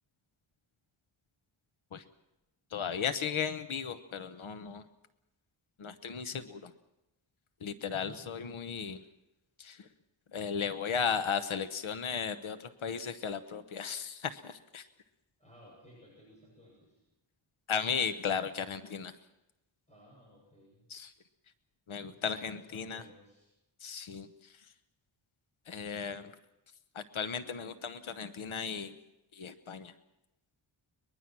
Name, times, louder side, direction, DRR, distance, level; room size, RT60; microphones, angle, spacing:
voice 1, 2.7-4.8 5.8-6.7 7.6-9.0 9.6-9.9 10.3-14.8 17.7-19.1 20.9-21.1 21.9-23.0 23.8-24.3 25.7-26.3 26.9-29.0 29.3-29.9, left 6 dB, 80° left, 11 dB, 1.1 m, -35 dB
voice 2, 7.9-8.3 15.4-17.0 19.9-20.8 22.0-23.5, equal, 15° left, -4 dB, 7.2 m, -57 dB
23.0 x 21.5 x 6.1 m, 0.95 s
wide cardioid pair, 170°, 48 cm